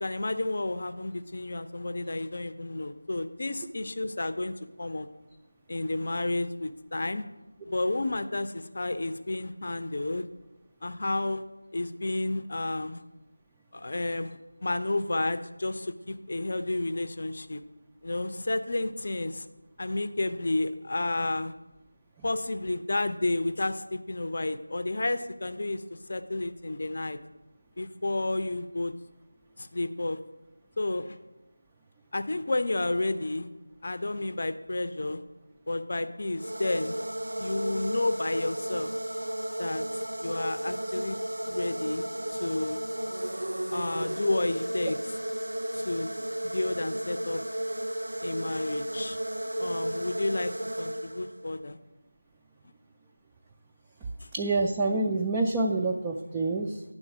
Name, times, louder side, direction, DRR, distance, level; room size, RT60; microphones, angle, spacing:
voice 1, 0.0-5.1 5.7-7.2 7.6-10.3 10.8-11.4 11.7-13.0 13.7-17.6 18.0-19.5 19.8-21.5 22.2-25.8 26.1-27.2 27.8-28.9 29.6-30.2 30.8-31.2 32.1-33.5 33.8-35.2 35.7-36.9 37.4-38.9 39.6-41.2 41.5-42.8 43.7-45.2 45.7-46.1 46.4-47.4 48.2-49.2 49.6-51.8 54.2-54.3, left 2 dB, 45° left, 11 dB, 0.5 m, -31 dB
sound 1, 36.4-51.6, right 1 dB, 85° right, 0.4 m, -33 dB
voice 2, 54.3-56.8, right 3 dB, 10° right, -1 dB, 0.3 m, -27 dB
10.0 x 3.8 x 6.1 m, 1.0 s
figure-of-eight pair, 170°, 0 cm